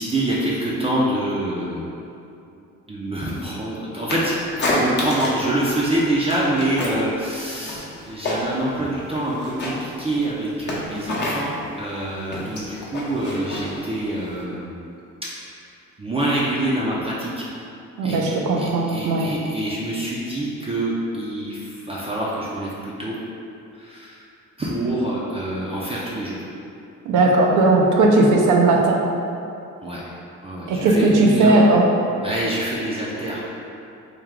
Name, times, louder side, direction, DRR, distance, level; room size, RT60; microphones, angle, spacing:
voice 1, 0.0-1.9 2.9-4.3 4.6-11.5 11.8-14.8 16.0-17.5 18.0-23.2 23.8-24.2 24.6-26.4 29.8-30.0 30.4-31.5 32.2-33.5, right 1 dB, 20° right, -6 dB, 0.5 m, -26 dB
sound 1, 4.1-5.5 5.8-7.1 7.4-8.7 9.0-14.4, left 1 dB, 35° left, 0.7 m, -28 dB
voice 2, 18.0-19.3 27.1-29.0 30.7-31.9, right 2 dB, 85° right, 0 dB, 0.5 m, -17 dB
3.3 x 2.2 x 3.5 m, 2.6 s
cardioid pair, 90°, 30 cm